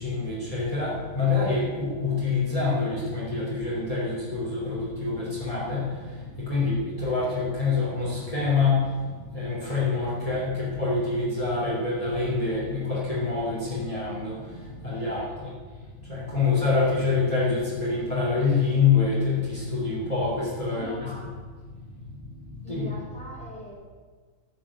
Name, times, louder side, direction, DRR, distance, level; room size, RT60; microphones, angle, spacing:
voice 1, 0.0-5.9 6.4-8.9 9.3-15.2 16.1-21.1 22.7-22.9, left 4 dB, 20° left, -7 dB, 3.7 m, -26 dB
voice 2, 14.9-15.5 20.6-21.3 22.6-23.7, left 1 dB, 5° left, -4 dB, 4.8 m, -42 dB
13.5 x 8.8 x 8.8 m, 1.5 s
omnidirectional pair, 1.6 m